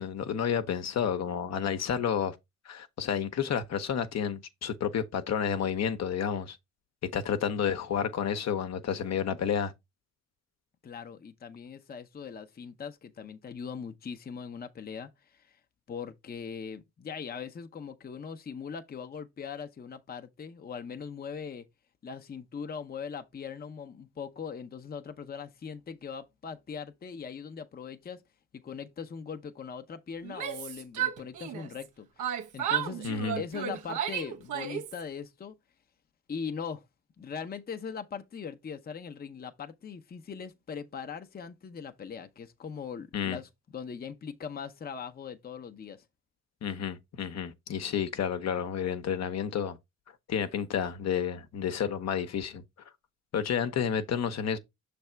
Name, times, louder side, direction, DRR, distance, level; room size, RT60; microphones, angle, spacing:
voice 1, 0.0-2.4 2.7-6.6 7.0-9.7 33.0-33.4 43.1-43.4 46.6-49.8 50.3-52.6 53.3-54.6, left 8 dB, 60° left, 0.9 m, -30 dB
voice 2, 10.8-15.6 15.9-21.7 22.0-28.2 28.5-35.5 36.3-36.8 37.2-46.0, left 6 dB, 30° left, 0.7 m, -40 dB
Yell, 30.2-31.9 32.2-35.0, right 9 dB, 80° right, 1.0 m, -33 dB
6.4 x 3.4 x 4.5 m
cardioid pair, 90°, 30 cm